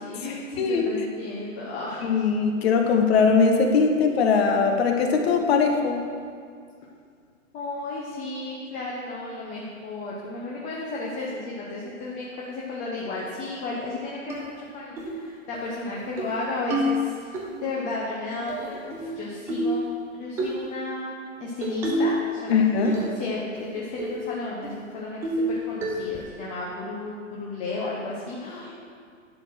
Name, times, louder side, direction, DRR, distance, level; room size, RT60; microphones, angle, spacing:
voice 1, 0.0-2.3 7.5-19.9 20.1-28.7, left 2 dB, 20° left, -4 dB, 0.9 m, -33 dB
voice 2, 2.0-6.0 22.5-22.9, left 5 dB, 50° left, 3 dB, 1.2 m, -20 dB
sound 1, 14.3-14.4 15.0-15.2 15.5-15.6 16.0-16.3 16.7-17.4 18.5-19.1 19.5-19.8 20.4-20.6 21.6-22.2 22.5-23.2 23.6-23.7 24.0-24.2 24.6-24.7 25.2-25.5 25.8-26.2, right 1 dB, 5° right, 0.4 m, -27 dB
10.5 x 4.2 x 6.2 m, 2.2 s
hypercardioid pair, 140°, 40 cm